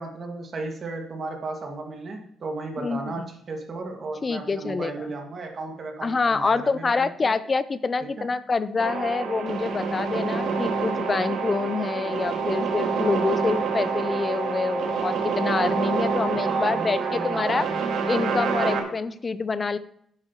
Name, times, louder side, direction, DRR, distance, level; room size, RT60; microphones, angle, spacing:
voice 1, 0.0-7.3 8.0-8.3 16.4-17.8, right 3 dB, 35° right, 3 dB, 2.0 m, -34 dB
voice 2, 2.8-3.3 4.2-5.1 6.0-17.7 18.1-19.8, left 4 dB, 25° left, 14 dB, 0.6 m, -26 dB
sound 1, 8.8-18.8, right 5 dB, 70° right, 1.9 m, -27 dB
12.5 x 9.7 x 3.0 m, 0.68 s
cardioid pair, 160°, 0 cm